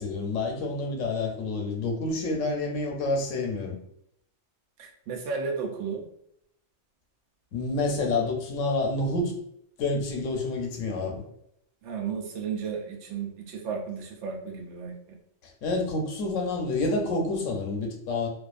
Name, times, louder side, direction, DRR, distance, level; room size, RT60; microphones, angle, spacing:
voice 1, 0.0-3.7 7.5-9.3 9.8-11.2 15.6-18.3, left 2 dB, 85° left, 1 dB, 1.0 m, -28 dB
voice 2, 4.8-6.0 11.8-14.9, right 5 dB, 70° right, 1 dB, 0.8 m, -33 dB
2.4 x 2.3 x 2.4 m, 0.72 s
omnidirectional pair, 1.3 m